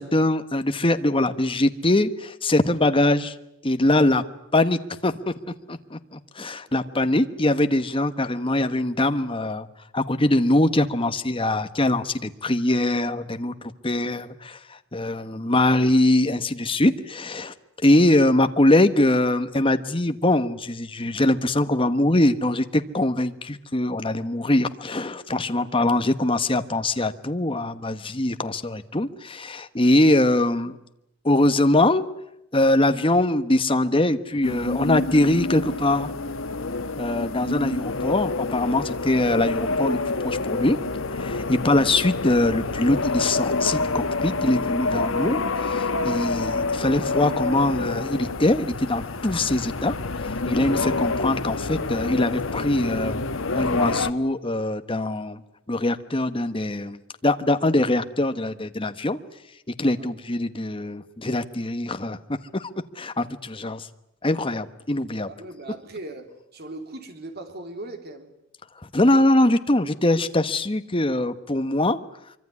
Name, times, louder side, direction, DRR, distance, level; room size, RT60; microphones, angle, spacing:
voice 1, 0.0-3.3 3.6-4.2 4.5-5.3 5.7-9.7 9.9-17.5 17.8-30.8 31.2-32.1 32.5-36.1 37.0-40.8 41.1-49.9 50.2-53.2 53.5-55.4 55.7-59.2 59.8-63.9 64.2-65.3 68.9-72.0, left 1 dB, 25° left, 9 dB, 1.2 m, -22 dB
voice 2, 6.7-7.0 57.6-57.7 60.0-60.1 65.3-68.3, right 2 dB, 50° right, 6 dB, 3.6 m, -39 dB
sound 1, 34.4-54.1, left 3 dB, 75° left, 1.2 m, -27 dB
25.0 x 24.5 x 9.6 m, 0.82 s
head